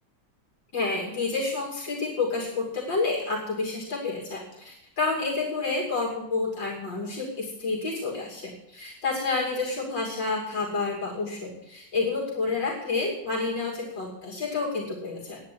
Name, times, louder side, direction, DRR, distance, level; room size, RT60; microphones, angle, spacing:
voice 1, 0.7-15.4, left 3 dB, 90° left, -2 dB, 3.5 m, -29 dB
10.0 x 9.7 x 8.5 m, 0.81 s
omnidirectional pair, 1.9 m